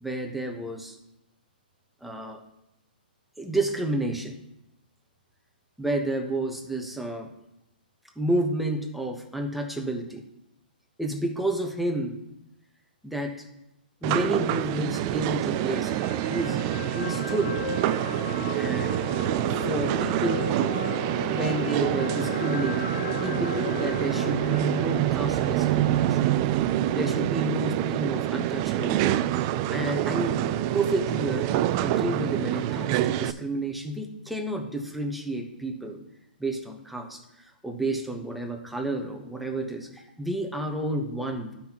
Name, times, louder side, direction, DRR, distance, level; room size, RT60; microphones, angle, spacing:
voice 1, 0.0-1.0 2.0-2.4 3.4-4.4 5.8-7.3 8.2-10.3 11.0-12.2 13.0-13.5 14.0-16.6 16.9-17.6 18.5-18.9 19.5-20.5 21.3-22.9 23.2-26.3 26.9-29.2 29.7-36.0 36.4-37.2 37.6-41.5, right 1 dB, ahead, 2 dB, 1.0 m, -30 dB
sound 1, 14.0-33.3, right 13 dB, 30° right, 0.3 m, -26 dB
sound 2, 15.5-27.8 28.2-28.3, left 5 dB, 75° left, 1.3 m, -37 dB
11.5 x 5.7 x 3.0 m, 0.87 s
hypercardioid pair, 140°, 5 cm